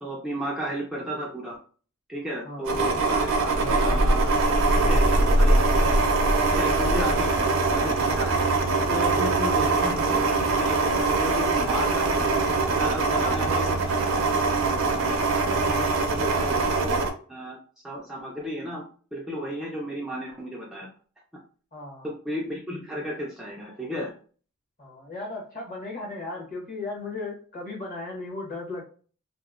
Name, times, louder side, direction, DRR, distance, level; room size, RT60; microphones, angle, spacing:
voice 1, 0.0-1.6 2.1-4.3 4.7-6.0 6.4-8.4 8.9-12.2 12.8-17.0 17.3-17.6 17.8-20.9 22.0-24.1, equal, 5° right, -3 dB, 0.3 m, -34 dB
sound 1, 2.6-17.1, right 3 dB, 60° right, 0.5 m, -22 dB
voice 2, 21.7-22.1 24.8-28.8, left 3 dB, 35° left, -2 dB, 1.0 m, -36 dB
2.9 x 2.1 x 2.3 m, 0.41 s
head